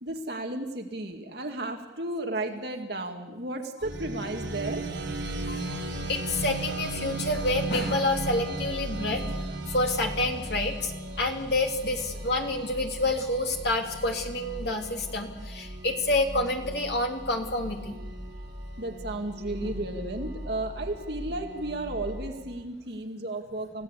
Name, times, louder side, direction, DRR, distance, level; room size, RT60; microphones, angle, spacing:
voice 1, 0.0-4.8 18.8-23.8, right 2 dB, 55° right, 3 dB, 2.2 m, -34 dB
sound 1, 3.8-22.4, right 2 dB, 75° right, 4.1 m, -36 dB
voice 2, 5.5-5.8 6.1-9.2 9.7-10.9 11.2-18.0 19.6-19.7, left 2 dB, 60° left, 2 dB, 3.4 m, -28 dB
29.0 x 16.5 x 8.3 m, 1.2 s
head